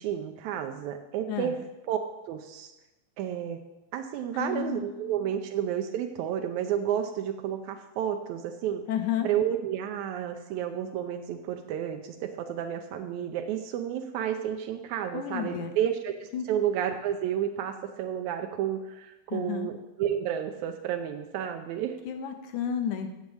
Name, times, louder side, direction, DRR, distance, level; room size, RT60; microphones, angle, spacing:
voice 1, 0.0-1.5 1.9-2.0 2.3-2.7 3.2-3.6 3.9-8.8 9.2-19.7 20.0-21.9, right 10 dB, 85° right, 5 dB, 1.6 m, -31 dB
voice 2, 4.3-5.1 8.9-9.3 15.1-15.7 16.3-16.5 19.3-19.7 22.1-23.1, left 9 dB, 75° left, 7 dB, 1.9 m, -32 dB
7.2 x 7.0 x 7.8 m, 0.99 s
omnidirectional pair, 4.0 m